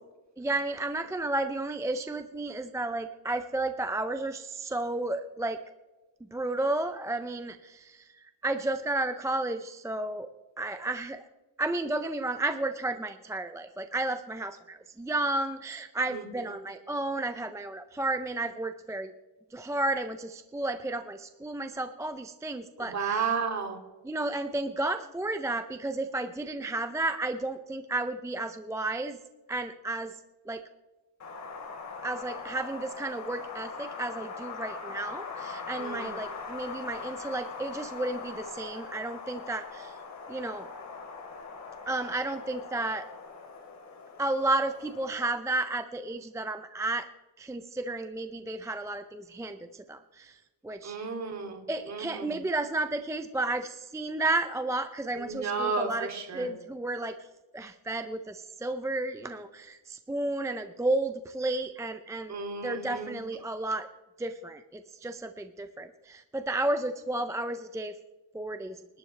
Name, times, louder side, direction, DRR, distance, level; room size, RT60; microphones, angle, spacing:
voice 1, 0.4-5.6 6.3-8.1 8.4-10.3 10.6-11.2 11.6-19.1 19.5-23.4 24.0-29.2 29.5-30.1 30.5-30.6 32.0-39.9 40.3-40.7 41.9-43.1 44.2-47.1 47.4-50.4 50.6-51.0 51.7-57.2 57.5-62.4 62.6-63.9 64.2-67.9 68.3-68.8, right 2 dB, 5° right, 8 dB, 0.4 m, -32 dB
voice 2, 22.8-23.8 35.8-36.1 50.8-51.6 51.9-52.3 55.2-56.5 62.3-63.2, right 5 dB, 35° right, 3 dB, 2.7 m, -32 dB
Wind, 31.2-45.3, left 5 dB, 35° left, 2.8 m, -41 dB
27.5 x 12.0 x 3.3 m, 1.2 s
cardioid pair, 145°, 45 cm